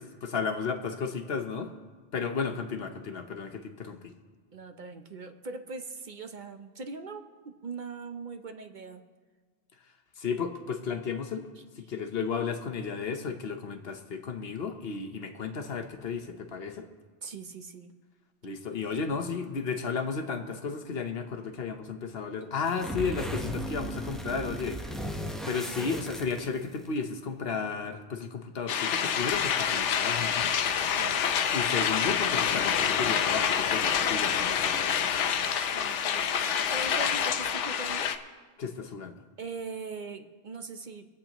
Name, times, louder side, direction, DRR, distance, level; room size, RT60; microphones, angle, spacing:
voice 1, 0.2-1.7 2.1-4.0 10.2-11.5 11.8-16.9 18.4-24.8 25.5-30.5 31.5-34.9 38.6-39.1, left 5 dB, 60° left, 7 dB, 1.1 m, -33 dB
voice 2, 4.5-9.0 17.2-17.9 30.9-31.6 35.3-38.1 39.4-41.1, right 4 dB, 50° right, 7 dB, 0.8 m, -41 dB
sound 1, 22.6-26.9, equal, ahead, 0.8 m, -36 dB
sound 2, 28.7-38.2, left 8 dB, 80° left, 1.0 m, -27 dB
24.5 x 8.6 x 3.0 m, 1.4 s
omnidirectional pair, 1.2 m